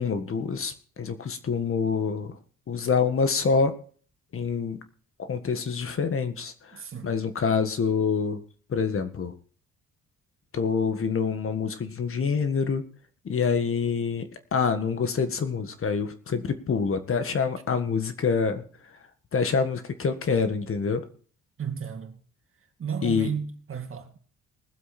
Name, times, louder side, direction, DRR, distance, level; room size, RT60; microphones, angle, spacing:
voice 1, 0.0-2.4 2.7-3.7 4.3-4.8 5.2-8.4 8.7-9.3 10.5-12.8 13.2-19.0 19.3-21.0 23.0-23.3, left 5 dB, 45° left, 1.6 m, -26 dB
voice 2, 6.7-7.1 21.6-22.2 22.8-24.2, right 7 dB, 45° right, 2.2 m, -33 dB
20.5 x 7.7 x 4.3 m
cardioid pair, 90°, 30 cm